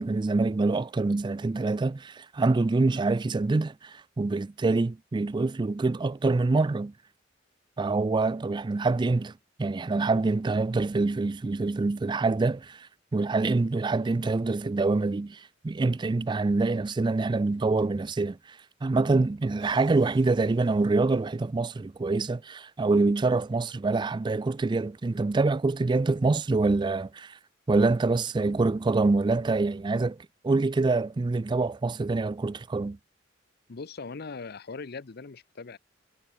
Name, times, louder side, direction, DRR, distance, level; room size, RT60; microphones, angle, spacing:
voice 1, 0.0-6.9 7.8-9.3 9.6-27.4 27.7-30.2 30.4-33.0, right 3 dB, 25° right, 0.3 m, -26 dB
Musical instrument, 19.6-21.7, right 4 dB, 75° right, 5.2 m, -57 dB
voice 2, 33.7-35.8, left 4 dB, 55° left, 0.7 m, -40 dB
head